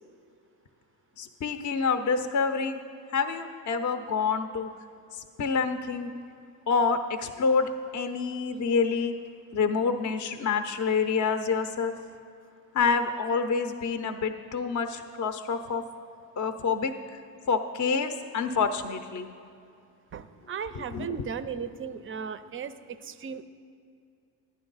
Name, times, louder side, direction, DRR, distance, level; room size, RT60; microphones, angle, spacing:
voice 1, 1.2-2.8 3.1-4.7 5.1-6.1 6.7-9.1 9.5-11.9 12.7-15.8 16.4-16.9 17.5-19.3 20.9-21.1, left 5 dB, 40° left, 8 dB, 0.6 m, -27 dB
voice 2, 20.1-23.4, right 7 dB, 30° right, 13 dB, 0.4 m, -36 dB
11.0 x 9.8 x 3.9 m, 2.4 s
supercardioid pair, 80°, 47 cm